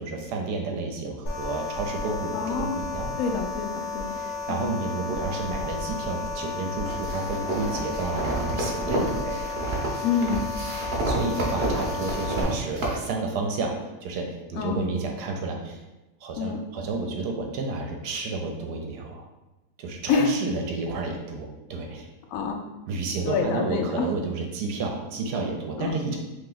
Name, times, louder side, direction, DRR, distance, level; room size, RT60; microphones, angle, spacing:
voice 1, 0.0-3.3 4.0-9.5 10.8-13.7 14.0-15.8 16.2-19.3 19.8-22.1 22.9-26.2, right 3 dB, 80° right, 2 dB, 1.1 m, -31 dB
sound 1, 1.3-12.4, left 4 dB, 45° left, 0.8 m, -33 dB
voice 2, 2.3-2.8 3.2-4.1 4.5-4.7 10.0-10.4 14.5-14.8 16.4-16.6 20.1-20.3 22.3-22.6 23.2-24.1 25.8-25.9, left 5 dB, 70° left, 3 dB, 0.9 m, -26 dB
sound 2, 6.8-13.0, right 2 dB, 50° right, 0.8 m, -30 dB
3.0 x 2.8 x 3.8 m, 1.0 s
omnidirectional pair, 1.7 m